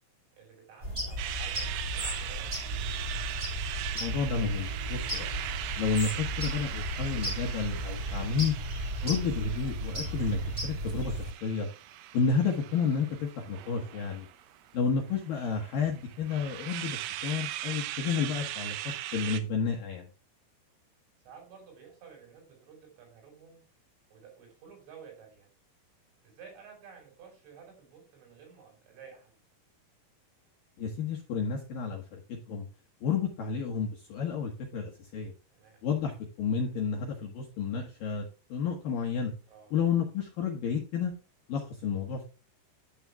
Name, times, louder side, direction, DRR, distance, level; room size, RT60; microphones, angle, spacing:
voice 1, 0.4-2.9 14.4-14.5 21.2-23.6 24.1-25.5 26.2-29.4 35.5-35.8 39.5-39.7, right 6 dB, 70° right, 1 dB, 7.3 m, -52 dB
sound 1, 0.8-11.3, right 1 dB, 15° right, 2.8 m, -35 dB
sound 2, 1.2-19.4, right 13 dB, 90° right, 3.6 m, -40 dB
voice 2, 3.9-5.3 5.8-8.5 9.0-11.7 12.1-14.3 14.7-18.8 19.1-20.1 30.8-32.7 33.0-35.3 35.8-36.1 36.4-39.3 39.7-41.1 41.5-42.2, left 5 dB, 70° left, 0 dB, 2.2 m, -31 dB
11.0 x 8.9 x 2.3 m, 0.34 s
omnidirectional pair, 5.8 m